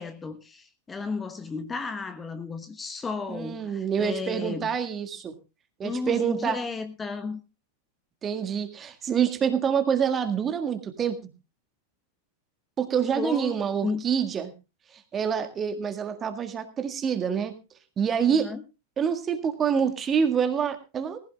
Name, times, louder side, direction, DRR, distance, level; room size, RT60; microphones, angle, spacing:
voice 1, 0.0-4.7 5.8-7.4 13.1-14.1 18.3-18.6, left 4 dB, 15° left, 1.1 m, -34 dB
voice 2, 3.3-5.3 5.8-6.6 8.2-11.3 12.8-14.5 15.1-17.5 18.0-18.5 19.0-21.2, right 7 dB, 25° right, 1.8 m, -26 dB
19.0 x 15.5 x 2.3 m
figure-of-eight pair, 90°, 0 cm